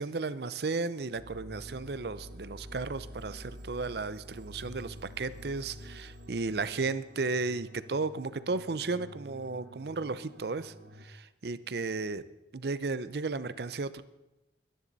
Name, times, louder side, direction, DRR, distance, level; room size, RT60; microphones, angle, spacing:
voice 1, 0.0-10.7 11.0-12.2 12.5-14.0, right 3 dB, 60° right, 15 dB, 0.6 m, -34 dB
sound 1, 1.1-11.1, equal, 90° right, 1.4 m, -48 dB
22.5 x 10.5 x 4.1 m, 1.0 s
head